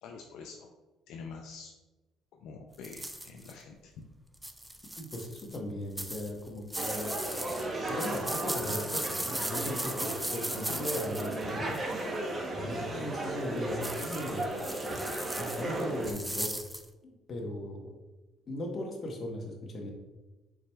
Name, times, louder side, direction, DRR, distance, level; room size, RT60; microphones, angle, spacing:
voice 1, 0.0-0.7 1.1-1.7 2.3-4.1, left 4 dB, 75° left, 1 dB, 0.4 m, -46 dB
sound 1, 2.8-3.5 4.3-5.6 6.0-11.9 13.8-16.9, right 1 dB, 5° right, 0.4 m, -37 dB
voice 2, 5.0-7.1 7.9-11.8 12.6-14.5 15.4-16.5 17.0-17.9 18.5-19.9, left 1 dB, 45° left, 1 dB, 1.0 m, -38 dB
sound 2, 6.8-16.1, right 2 dB, 35° right, 0.8 m, -35 dB
4.7 x 4.1 x 2.3 m, 1.1 s
supercardioid pair, 80°, 0 cm